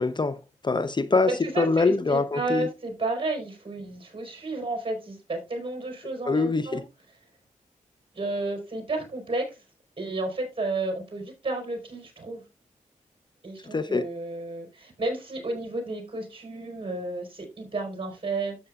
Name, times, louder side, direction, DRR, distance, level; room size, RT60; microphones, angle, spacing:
voice 1, 0.0-2.7 6.2-6.8 13.7-14.1, left 3 dB, 35° left, 0.7 m, -24 dB
voice 2, 1.3-6.8 8.1-9.6 10.0-12.4 13.4-18.6, right 2 dB, 40° right, 4.4 m, -32 dB
12.5 x 7.8 x 2.4 m
cardioid pair, 60°, 13 cm